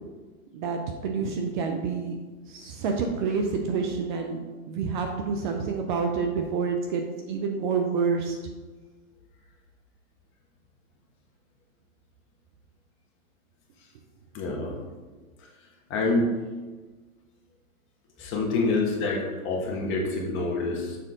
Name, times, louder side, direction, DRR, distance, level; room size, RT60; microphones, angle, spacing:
voice 1, 0.5-2.2 2.5-4.4 4.7-8.4, right 5 dB, 35° right, 3 dB, 0.5 m, -28 dB
voice 2, 14.3-14.7 15.4-15.5 15.9-16.3 18.2-21.0, left 3 dB, 30° left, -1 dB, 1.3 m, -27 dB
6.7 x 3.8 x 3.7 m, 1.3 s
hypercardioid pair, 125°, 42 cm